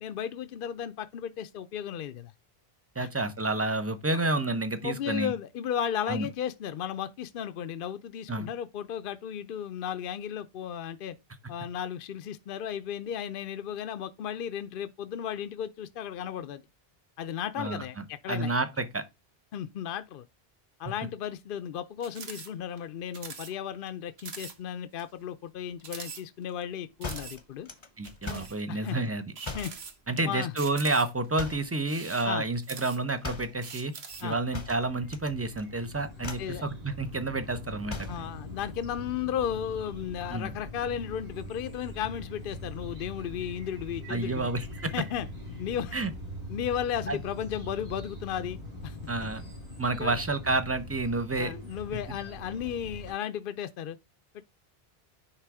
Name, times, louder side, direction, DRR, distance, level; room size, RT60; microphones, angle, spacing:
voice 1, 0.0-2.3 3.0-3.1 4.1-4.2 4.8-11.1 11.5-16.6 17.2-18.5 19.5-20.3 20.8-27.7 28.3-29.0 29.5-29.7 30.2-30.5 32.2-32.5 34.2-34.4 36.4-36.6 38.1-44.5 44.9-45.3 45.6-46.0 46.5-49.0 50.0-50.2 51.4-54.0 54.3-54.4, left 9 dB, 65° left, 0.7 m, -35 dB
voice 2, 3.0-5.3 6.1-6.3 8.3-8.5 17.6-19.0 28.0-29.2 30.1-33.9 34.2-38.2 40.3-40.5 44.1-44.9 45.9-46.1 47.1-47.2 49.1-49.4 49.8-51.5, right 2 dB, 15° right, 0.7 m, -30 dB
sound 1, 22.0-22.5 22.8-22.9 23.1-23.5 23.9-24.0 24.2-24.5 25.0-25.1 25.8-26.6 27.0-27.4 28.0-28.6 29.3-30.2 30.6-31.3 31.8-33.2 33.6-34.3, right 5 dB, 80° right, 1.3 m, -43 dB
sound 2, 27.0-28.6 29.4-29.8 31.3-31.8 33.2-33.6 34.5-35.3 35.6-35.8 36.2-36.6 37.9-38.3, left 4 dB, 30° left, 0.8 m, -39 dB
sound 3, 34.1-53.1, left 1 dB, 60° right, 4.8 m, -42 dB
9.8 x 3.4 x 4.8 m
omnidirectional pair, 1.0 m